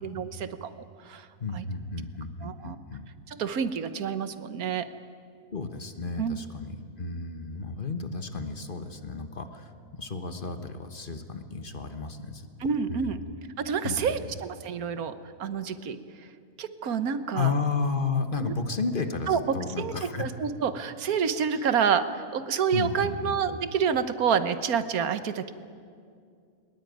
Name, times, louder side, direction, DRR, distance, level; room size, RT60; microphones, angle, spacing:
voice 1, 0.0-1.3 1.5-1.6 2.4-2.8 3.3-4.9 6.2-6.4 12.6-13.2 13.6-16.3 16.6-17.5 18.4-18.5 19.3-19.4 19.8-25.5, right 7 dB, 85° right, 12 dB, 1.5 m, -28 dB
voice 2, 1.4-3.0 5.5-12.5 12.9-13.3 13.8-14.2 17.3-20.2 21.5-21.7 22.7-23.4, left 4 dB, 40° left, 8 dB, 1.4 m, -32 dB
22.0 x 20.5 x 9.3 m, 2.3 s
omnidirectional pair, 1.5 m